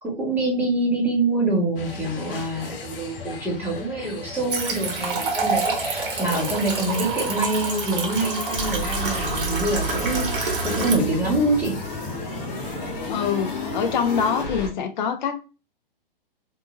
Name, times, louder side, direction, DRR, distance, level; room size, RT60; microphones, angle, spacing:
voice 1, 0.0-11.7, right 2 dB, 5° right, 1.7 m, -25 dB
sound 1, 1.8-11.2, left 4 dB, 65° left, 1.0 m, -38 dB
sound 2, 4.5-11.0, right 4 dB, 65° right, 1.3 m, -27 dB
sound 3, 8.5-14.7, left 1 dB, 35° left, 1.6 m, -30 dB
voice 2, 13.1-15.4, left 7 dB, 50° left, 0.6 m, -25 dB
3.7 x 2.9 x 2.6 m
hypercardioid pair, 125°, 29 cm